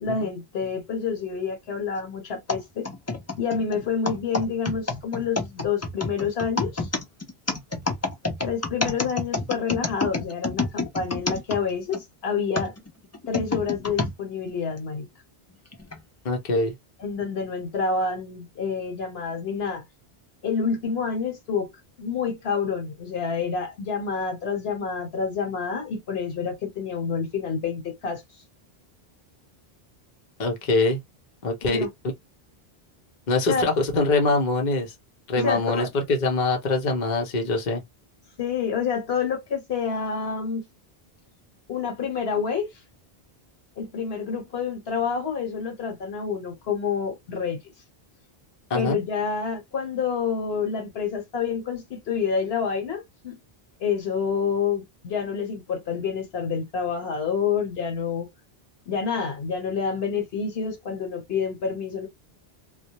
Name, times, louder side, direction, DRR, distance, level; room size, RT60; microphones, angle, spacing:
voice 1, 0.0-2.9 3.4-6.9 8.4-12.7 13.3-15.0 17.0-19.8 20.4-21.7 22.0-28.2 31.6-31.9 33.5-33.7 35.3-35.9 38.4-40.6 41.7-42.7 43.8-47.6 48.7-53.4 53.8-58.3 58.9-62.1, left 6 dB, 75° left, 1.1 m, -28 dB
sound 1, 2.5-12.0 12.5-14.1 14.8-14.9 15.7-16.0, left 3 dB, 25° left, 0.3 m, -28 dB
voice 2, 16.2-16.7 30.4-31.0 31.4-31.9 33.3-34.9 35.3-37.8 48.7-49.0, left 2 dB, 50° left, 0.8 m, -23 dB
2.2 x 2.0 x 2.8 m
omnidirectional pair, 1.1 m